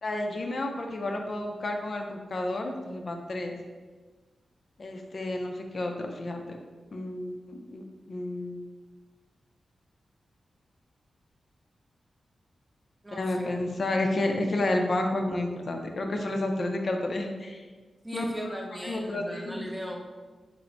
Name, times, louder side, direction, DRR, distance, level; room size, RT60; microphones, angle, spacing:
voice 1, 0.0-3.6 4.8-6.6 6.9-8.6 13.1-17.6 18.1-18.3 18.7-19.7, left 2 dB, 45° left, 3 dB, 0.4 m, -31 dB
voice 2, 13.0-13.5 18.0-20.0, equal, 10° right, 1 dB, 0.5 m, -37 dB
3.9 x 2.0 x 4.4 m, 1.4 s
wide cardioid pair, 115°, 0 cm